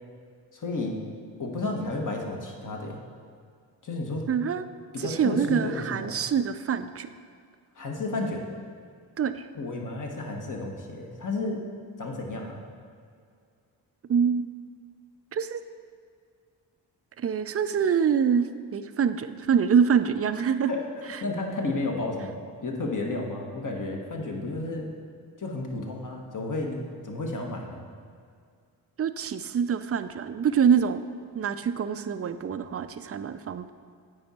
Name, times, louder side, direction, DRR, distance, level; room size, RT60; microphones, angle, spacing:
voice 1, 0.5-1.0 1.4-3.0 3.8-4.2 4.9-6.2 7.7-8.5 9.5-11.6 12.0-12.6 20.7-22.3 22.6-24.9 25.4-27.9, left 2 dB, 45° left, 1 dB, 1.4 m, -32 dB
voice 2, 4.3-4.6 5.0-7.1 9.2-9.5 14.1-14.5 15.3-15.6 17.2-20.7 21.1-21.2 29.0-31.0 31.3-33.7, right 7 dB, 35° right, 12 dB, 0.4 m, -25 dB
8.7 x 4.9 x 4.3 m, 2.2 s
supercardioid pair, 45°, 44 cm